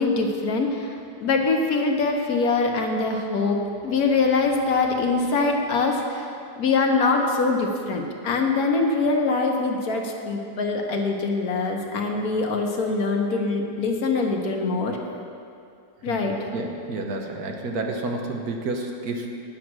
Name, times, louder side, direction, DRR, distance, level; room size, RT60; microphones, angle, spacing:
voice 1, 0.0-15.0 16.0-16.4, left 3 dB, 70° left, 2 dB, 1.4 m, -23 dB
voice 2, 16.1-19.4, right 2 dB, 70° right, 2 dB, 1.4 m, -30 dB
9.8 x 7.5 x 6.1 m, 2.5 s
omnidirectional pair, 1.7 m